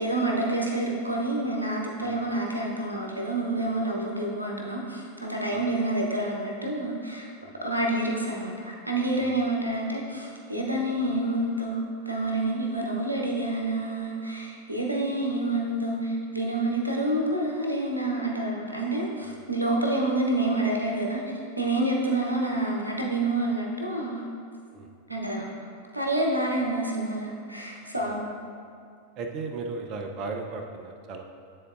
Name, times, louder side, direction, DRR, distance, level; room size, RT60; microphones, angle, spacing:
voice 1, 0.0-7.3 7.6-11.8 12.1-21.2 21.6-24.2 25.1-25.5 25.9-28.3, right 2 dB, 85° right, -1 dB, 0.8 m, -28 dB
voice 2, 29.2-31.2, right 3 dB, 35° right, 4 dB, 0.6 m, -36 dB
9.6 x 3.9 x 2.5 m, 2.3 s
figure-of-eight pair, 90°, 0 cm